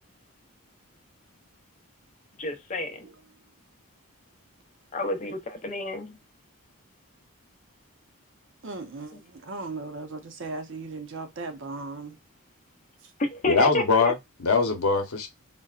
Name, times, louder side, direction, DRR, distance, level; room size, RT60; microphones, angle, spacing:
voice 1, 2.4-3.1 4.9-6.1 13.2-14.1, left 2 dB, 35° left, 0.6 m, -30 dB
voice 2, 8.6-12.2, right 3 dB, 60° right, 0.7 m, -37 dB
voice 3, 13.5-15.3, left 4 dB, 85° left, 0.9 m, -22 dB
4.0 x 2.1 x 2.4 m
head